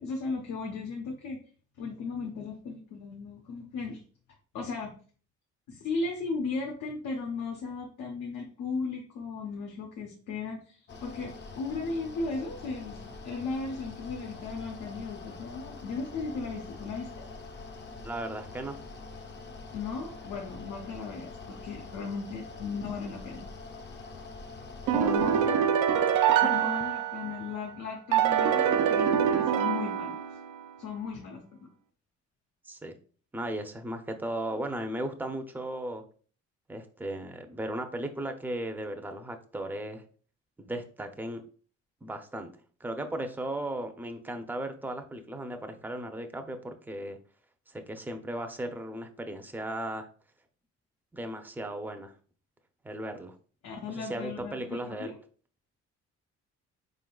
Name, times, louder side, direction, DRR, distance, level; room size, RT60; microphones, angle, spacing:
voice 1, 0.0-1.4 1.8-4.0 4.5-4.9 5.7-17.2 19.7-21.4 21.6-23.5 25.0-25.6 26.4-30.2 30.8-31.7 53.6-55.1, left 4 dB, 80° left, -1 dB, 0.9 m, -36 dB
Mechanical fan, 10.9-25.5, left 3 dB, 35° left, 0.6 m, -44 dB
voice 2, 18.0-18.8 24.9-25.6 26.4-26.6 32.7-32.9 33.3-36.0 36.7-40.0 40.6-41.4 42.0-42.5 42.8-47.2 47.7-50.1 51.1-52.1 52.8-53.4 53.9-55.1, right 1 dB, 5° right, 6 dB, 0.5 m, -36 dB
sound 1, 24.9-27.5 28.1-30.6, right 9 dB, 85° right, 0.5 m, -25 dB
4.2 x 3.8 x 2.3 m, 0.41 s
cardioid pair, 90°, 30 cm